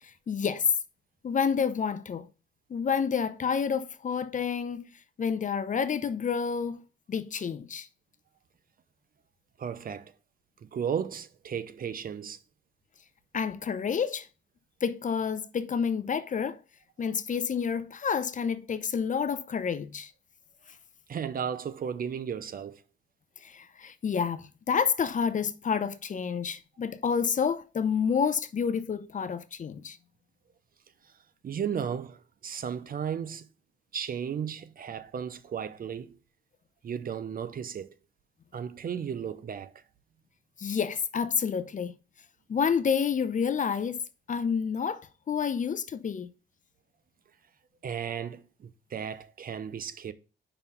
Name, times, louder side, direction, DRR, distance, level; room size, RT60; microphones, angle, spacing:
voice 1, 0.3-0.7 1.2-2.3 2.7-4.8 5.2-6.8 7.1-7.9 13.3-14.3 14.8-16.6 17.0-20.1 23.4-30.0 40.6-41.9 42.5-44.0 44.3-46.3, left 6 dB, 40° left, 0.7 m, -29 dB
voice 2, 9.6-10.1 10.6-12.4 21.1-22.8 31.4-33.5 33.9-36.1 36.8-37.9 38.5-39.7 47.8-50.1, right 7 dB, 45° right, 0.7 m, -34 dB
5.5 x 4.5 x 5.4 m
cardioid pair, 90°, 20 cm